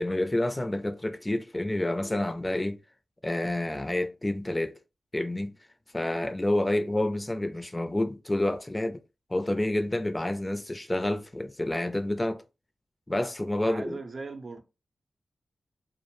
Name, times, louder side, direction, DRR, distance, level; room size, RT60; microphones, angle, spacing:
voice 1, 0.0-2.8 3.2-4.7 5.1-5.5 5.9-9.0 9.3-12.4 13.1-14.0, left 1 dB, 25° left, 0.4 m, -28 dB
voice 2, 13.7-14.6, right 3 dB, 55° right, 0.6 m, -39 dB
2.3 x 2.1 x 3.0 m
cardioid pair, 45°, 0 cm